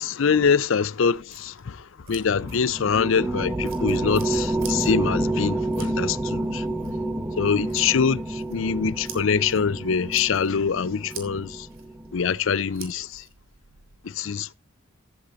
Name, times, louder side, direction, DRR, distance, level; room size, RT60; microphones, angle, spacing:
voice 1, 0.0-6.6 7.4-11.7 12.1-13.2 14.0-14.5, left 6 dB, 65° left, 0.5 m, -24 dB
sound 1, 1.0-14.0, right 7 dB, 70° right, 3.7 m, -48 dB
sound 2, 2.4-12.2, right 2 dB, 10° right, 0.8 m, -29 dB
14.5 x 8.3 x 4.0 m
head